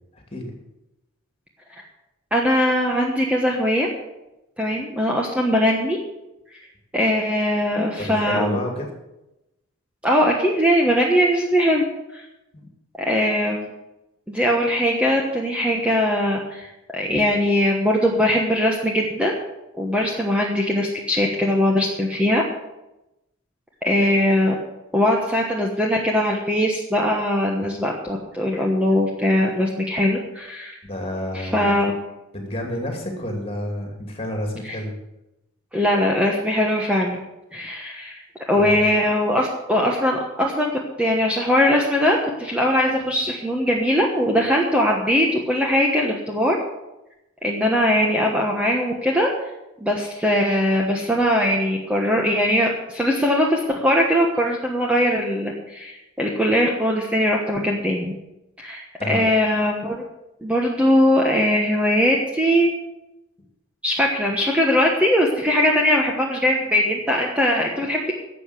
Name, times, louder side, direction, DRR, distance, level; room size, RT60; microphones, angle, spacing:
voice 1, 0.1-0.6 7.9-8.9 12.5-12.6 30.9-31.7 32.3-34.9 38.5-38.7 59.0-59.2, left 1 dB, 25° left, 2 dB, 2.6 m, -29 dB
voice 2, 2.3-3.9 4.6-6.0 6.9-8.6 10.0-11.9 12.1-12.2 13.0-13.7 14.3-19.3 19.8-22.4 23.8-24.5 24.9-30.8 31.3-32.0 34.6-34.8 35.7-37.2 37.5-38.2 38.5-40.7 41.0-46.6 47.4-49.3 49.8-58.1 58.6-60.0 60.4-62.7 63.8-68.1, equal, 5° right, -1 dB, 1.2 m, -20 dB
12.0 x 7.7 x 8.1 m, 0.93 s
head